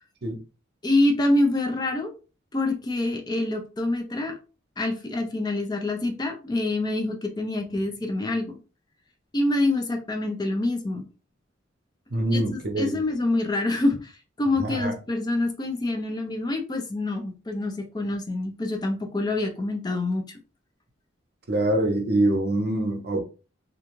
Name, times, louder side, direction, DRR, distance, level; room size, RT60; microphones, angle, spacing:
voice 1, 0.8-2.1 2.5-4.4 4.8-8.6 9.3-11.1 12.3-20.4, left 2 dB, 20° left, 0.4 m, -26 dB
voice 2, 12.1-12.9 14.6-14.9 21.5-23.2, right 1 dB, 55° right, 0.6 m, -24 dB
2.4 x 2.2 x 3.0 m
head